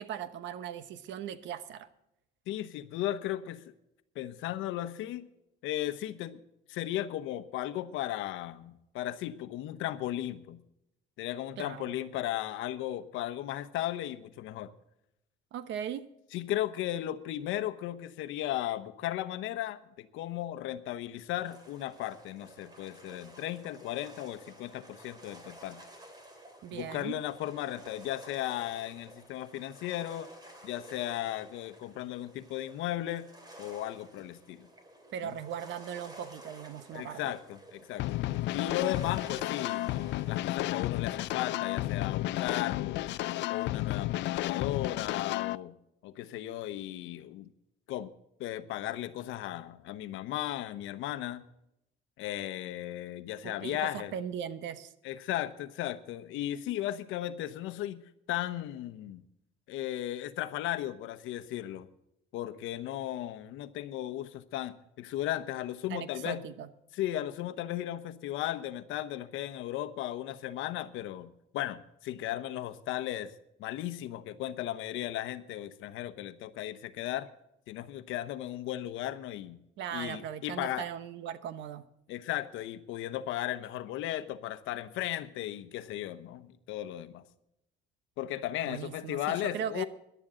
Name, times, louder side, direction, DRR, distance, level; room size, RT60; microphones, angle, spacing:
voice 1, 0.0-1.9 11.6-12.0 15.5-16.0 26.6-27.2 35.1-37.2 53.4-54.9 65.9-66.7 79.8-81.8 88.6-89.8, right 9 dB, 65° right, 12 dB, 1.0 m, -39 dB
voice 2, 2.5-3.6 4.1-5.3 5.6-6.4 6.7-10.6 11.2-14.7 16.3-25.8 26.7-30.3 30.6-33.3 33.6-34.7 36.9-38.2 38.5-43.1 43.5-45.7 46.0-47.5 47.9-48.1 48.4-51.4 52.2-54.1 55.0-58.0 58.3-59.2 59.7-61.9 62.3-66.4 66.9-73.3 73.6-77.3 77.7-79.6 79.9-80.9 82.1-87.2 88.2-89.8, left 13 dB, 80° left, 12 dB, 1.0 m, -36 dB
sound 1, 21.5-40.5, right 1 dB, 20° right, 2.9 m, -53 dB
sound 2, 38.0-45.6, left 16 dB, 65° left, 0.4 m, -32 dB
17.5 x 11.0 x 3.8 m, 0.84 s
cardioid pair, 145°, 20 cm